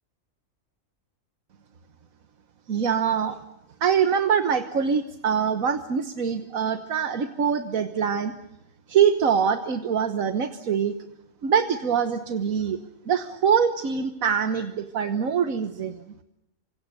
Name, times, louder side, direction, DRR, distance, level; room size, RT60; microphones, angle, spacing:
voice 1, 2.7-3.4 3.8-8.3 8.9-10.9 11.4-12.8 13.1-16.0, right 7 dB, 85° right, 8 dB, 1.6 m, -24 dB
28.5 x 25.5 x 6.8 m, 0.85 s
omnidirectional pair, 1.4 m